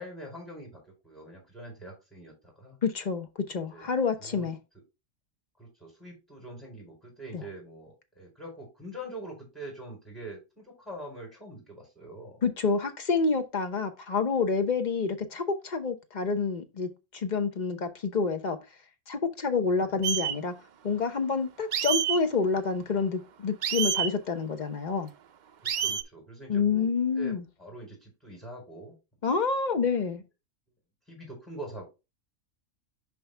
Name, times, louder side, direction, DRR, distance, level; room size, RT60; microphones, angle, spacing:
voice 1, 0.0-2.8 3.7-3.9 4.2-4.5 5.6-12.4 19.7-20.0 25.6-26.9 27.2-29.0 31.1-31.8, right 1 dB, ahead, 4.3 m, -44 dB
voice 2, 2.8-4.6 12.4-18.6 19.1-20.5 20.8-25.1 26.5-27.4 29.2-30.2, left 5 dB, 40° left, 0.9 m, -28 dB
sound 1, 20.0-20.4 21.7-22.2 23.6-24.1 25.7-26.0, right 9 dB, 75° right, 0.4 m, -27 dB
6.2 x 5.1 x 3.3 m
omnidirectional pair, 1.4 m